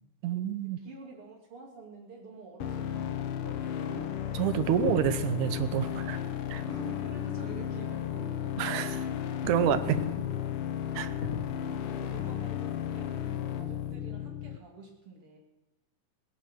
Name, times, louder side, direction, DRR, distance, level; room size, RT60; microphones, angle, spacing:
voice 1, 0.2-0.8 4.3-6.2 6.5-6.6 8.6-9.1 9.4-10.0 10.9-11.1, right 9 dB, 80° right, 11 dB, 2.4 m, -28 dB
voice 2, 0.8-4.2 4.6-4.9 6.6-8.7 11.8-15.4, right 3 dB, 45° right, 1 dB, 3.6 m, -48 dB
sound 1, 2.6-14.6, left 10 dB, 70° left, 1.3 m, -34 dB
sound 2, 4.6-7.6 7.9-8.1 8.6-9.4 9.7-13.9, left 6 dB, 50° left, 1.1 m, -42 dB
18.0 x 11.5 x 6.3 m, 0.99 s
omnidirectional pair, 3.6 m